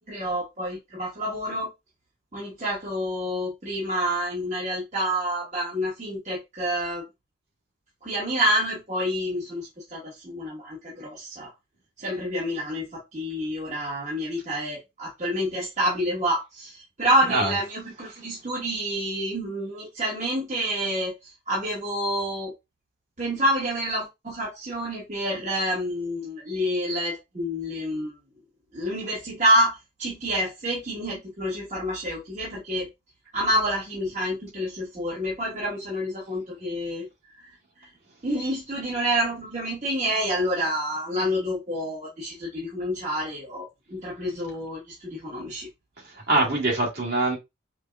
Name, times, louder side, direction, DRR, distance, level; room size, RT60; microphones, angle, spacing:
voice 1, 0.1-1.7 2.3-7.0 8.0-11.5 12.0-22.5 23.2-28.1 28.7-32.9 33.3-37.1 37.4-37.5 38.2-45.7, equal, 35° right, 1.1 m, -28 dB
voice 2, 17.2-17.6 46.3-47.4, right 2 dB, 55° right, 1.7 m, -23 dB
5.1 x 2.2 x 2.2 m
head